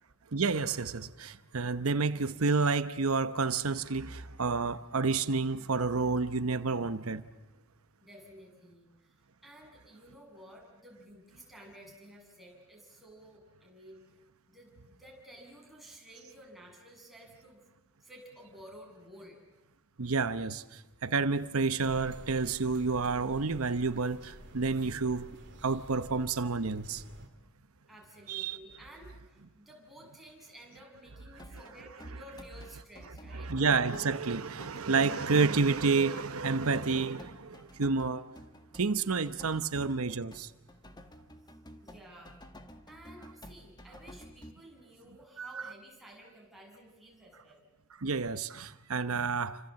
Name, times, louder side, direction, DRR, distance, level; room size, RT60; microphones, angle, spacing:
voice 1, 0.3-7.2 20.0-25.3 25.6-27.0 28.3-28.6 33.4-38.2 38.7-40.5 45.4-45.6 48.0-49.6, right 4 dB, 80° right, 0.9 m, -30 dB
voice 2, 8.0-9.2 9.4-14.0 14.5-17.6 18.0-19.4 27.9-33.5 39.5-39.6 41.8-42.4 42.9-47.6, equal, ahead, 7.1 m, -53 dB
sound 1, 21.8-27.3, right 1 dB, 55° right, 2.6 m, -50 dB
sound 2, 31.4-44.5, equal, 20° left, 1.8 m, -52 dB
29.5 x 26.0 x 7.7 m
head